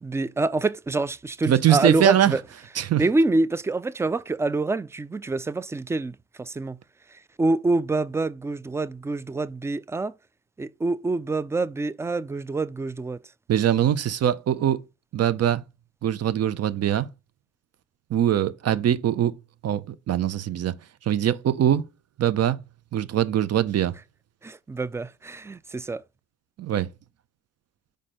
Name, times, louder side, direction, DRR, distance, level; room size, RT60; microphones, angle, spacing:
voice 1, 0.0-2.4 3.0-6.8 7.4-10.1 10.6-13.2 24.4-26.0, right 2 dB, 10° right, 0.3 m, -26 dB
voice 2, 1.5-2.4 2.7-3.0 13.5-14.8 15.1-15.6 16.0-17.1 18.1-19.4 19.6-20.7 21.0-21.8 22.2-22.6 22.9-23.9 26.6-26.9, right 10 dB, 55° right, 0.7 m, -22 dB
5.2 x 4.2 x 5.0 m
cardioid pair, 90°, 30 cm